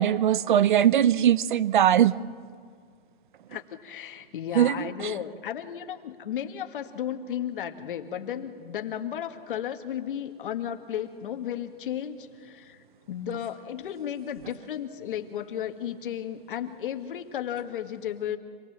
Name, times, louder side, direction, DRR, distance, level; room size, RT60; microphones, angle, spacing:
voice 1, 0.0-2.2 4.5-5.1, right 10 dB, 55° right, 0.6 m, -21 dB
voice 2, 3.5-18.4, left 10 dB, 60° left, 1.8 m, -34 dB
26.5 x 19.5 x 7.5 m
supercardioid pair, 180°, 29 cm